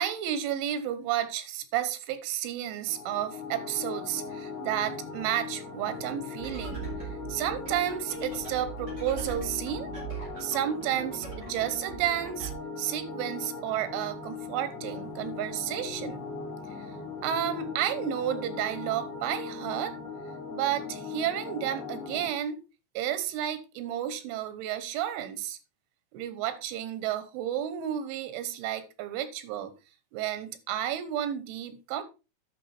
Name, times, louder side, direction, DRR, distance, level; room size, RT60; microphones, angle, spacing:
voice 1, 0.0-9.9 10.4-12.5 12.8-16.3 17.2-20.0 20.5-22.6 23.0-25.6 26.1-29.7 30.1-32.0, right 11 dB, 85° right, 3.5 m, -32 dB
sound 1, 2.9-22.3, left 4 dB, 75° left, 4.3 m, -39 dB
sound 2, 6.4-12.5, right 7 dB, 25° right, 4.0 m, -41 dB
9.9 x 6.2 x 4.3 m
omnidirectional pair, 5.4 m